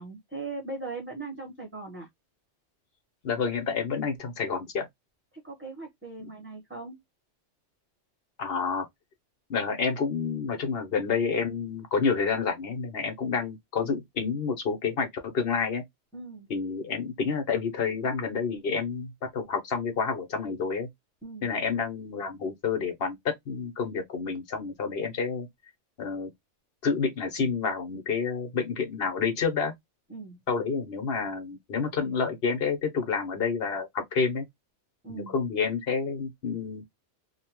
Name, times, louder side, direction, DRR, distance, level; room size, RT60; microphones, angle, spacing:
voice 1, 0.0-2.1 5.4-7.0 16.1-16.5 21.2-21.5 30.1-30.4 35.0-35.3, right 3 dB, 10° right, 0.9 m, -39 dB
voice 2, 3.2-4.9 8.4-8.9 9.5-15.8 16.5-20.9 21.4-23.2 23.5-25.5 26.0-26.3 26.8-29.7 30.5-34.4 35.1-36.8, left 5 dB, 55° left, 1.1 m, -29 dB
2.9 x 2.2 x 2.9 m
omnidirectional pair, 1.2 m